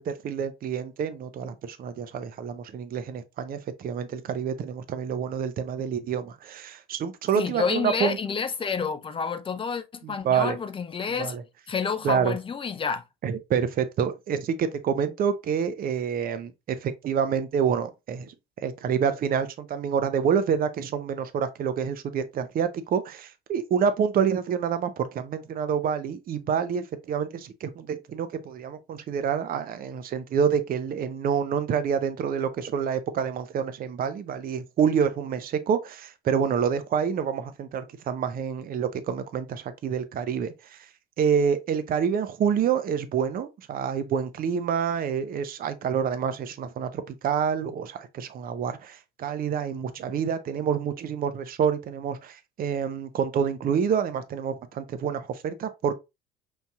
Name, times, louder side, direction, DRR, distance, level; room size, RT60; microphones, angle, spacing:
voice 1, 0.0-8.2 10.0-10.6 11.2-11.4 12.0-12.4 13.2-18.3 18.6-40.9 41.2-55.9, right 7 dB, 30° right, 0.6 m, -27 dB
voice 2, 7.4-11.4 11.7-13.0, left 6 dB, 20° left, 0.5 m, -29 dB
6.2 x 2.6 x 2.3 m
figure-of-eight pair, 65°, 29 cm